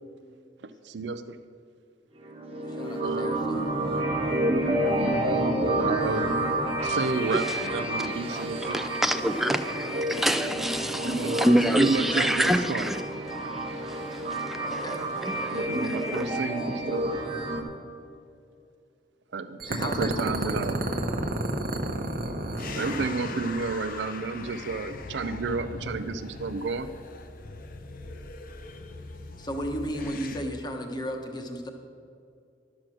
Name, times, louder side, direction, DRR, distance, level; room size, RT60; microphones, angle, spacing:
voice 1, 0.6-1.4 3.0-3.5 4.6-5.2 5.8-6.4 6.8-8.8 11.0-11.5 11.8-12.9 15.5-17.1 19.3-20.8 22.8-26.9, right 4 dB, 75° right, 0.5 m, -31 dB
sound 1, 2.2-17.6, right 1 dB, 35° right, 1.1 m, -29 dB
voice 2, 2.8-3.7 11.7-12.3 14.7-15.0 15.4-15.7 19.7-20.7 29.4-31.7, equal, 25° left, 1.1 m, -35 dB
voice 3, 7.0-7.7 8.3-8.5 8.7-16.4, equal, ahead, 0.4 m, -28 dB
sound 2, 19.6-23.4, right 1 dB, 55° right, 0.9 m, -30 dB
sound 3, 22.6-30.4, left 3 dB, 50° left, 0.7 m, -40 dB
12.0 x 6.4 x 6.0 m
head